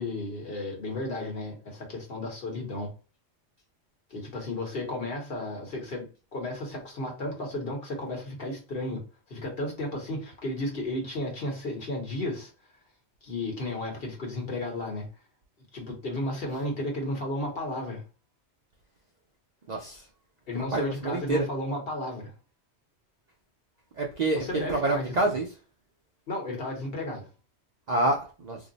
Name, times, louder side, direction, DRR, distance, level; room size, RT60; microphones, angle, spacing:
voice 1, 0.0-2.9 4.1-9.0 9.3-12.5 13.2-15.1 15.7-18.0 20.5-22.3 24.3-25.4 26.3-27.2, left 1 dB, 55° left, 1.2 m, -33 dB
voice 2, 19.7-20.0 20.7-21.5 24.0-25.5 27.9-28.6, right 2 dB, 55° right, 0.5 m, -27 dB
2.7 x 2.0 x 3.8 m
omnidirectional pair, 1.2 m